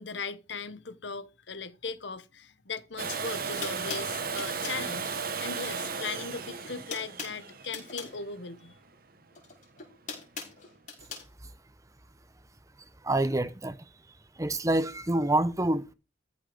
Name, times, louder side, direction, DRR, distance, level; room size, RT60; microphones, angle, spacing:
voice 1, 0.0-8.8, left 5 dB, 70° left, 1.2 m, -38 dB
Domestic sounds home sounds, 3.0-8.8 10.7-10.8, right 5 dB, 55° right, 1.4 m, -35 dB
sound 1, 3.1-3.2 3.6-4.9 6.0-6.3 6.6-8.2 9.3-11.3, left 5 dB, 45° left, 5.2 m, -41 dB
voice 2, 13.0-13.8 14.4-15.9, right 1 dB, 15° right, 0.8 m, -27 dB
14.0 x 6.4 x 5.1 m
head